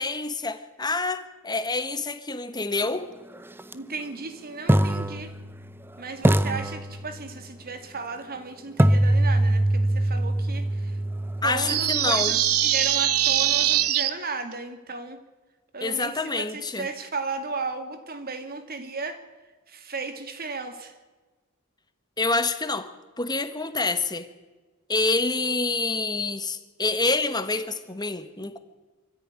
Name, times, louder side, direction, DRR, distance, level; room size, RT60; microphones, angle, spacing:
voice 1, 0.0-3.1 11.4-12.4 15.8-16.9 22.2-22.9 23.2-24.3 24.9-28.6, left 3 dB, 20° left, 10 dB, 1.5 m, -27 dB
sound 1, 3.6-3.7 4.7-5.9 6.2-7.5 8.8-12.7, right 1 dB, 10° right, 0.7 m, -24 dB
voice 2, 3.7-5.4 6.0-11.0 11.4-15.2 15.7-19.2 19.7-21.0, right 4 dB, 45° right, 8 dB, 2.5 m, -35 dB
sound 2, 11.7-14.1, right 12 dB, 90° right, 1.2 m, -22 dB
25.0 x 14.5 x 9.8 m, 1.3 s
head